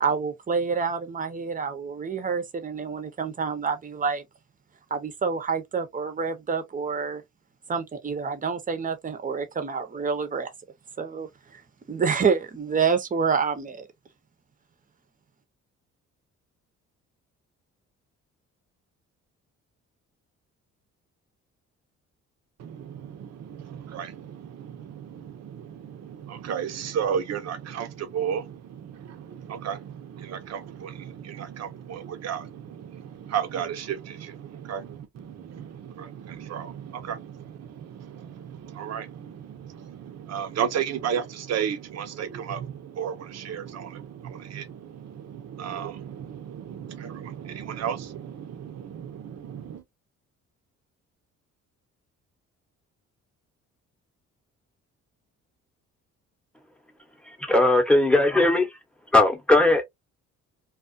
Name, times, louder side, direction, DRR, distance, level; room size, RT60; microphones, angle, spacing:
voice 1, 0.0-4.2 4.9-7.2 7.7-10.5 11.0-11.6 11.9-13.9, right 5 dB, 25° right, 0.7 m, -27 dB
voice 2, 22.6-49.8, right 8 dB, 60° right, 0.7 m, -34 dB
voice 3, 57.4-58.7 59.1-59.8, left 2 dB, 5° left, 0.9 m, -18 dB
2.4 x 2.4 x 2.4 m
cardioid pair, 90°, 30 cm